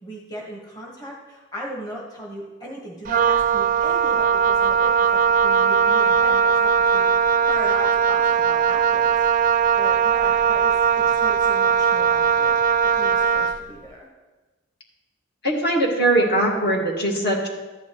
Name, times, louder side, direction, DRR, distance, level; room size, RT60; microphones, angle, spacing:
voice 1, 0.0-5.1 5.4-9.1 9.7-12.5 12.8-14.1, equal, 20° left, -3 dB, 1.4 m, -37 dB
Wind instrument woodwind instrument, 3.1-13.6, right 6 dB, 45° right, 0.4 m, -19 dB
voice 2, 15.4-17.5, right 1 dB, 55° left, -1 dB, 1.9 m, -21 dB
14.0 x 10.0 x 3.0 m, 1.2 s
head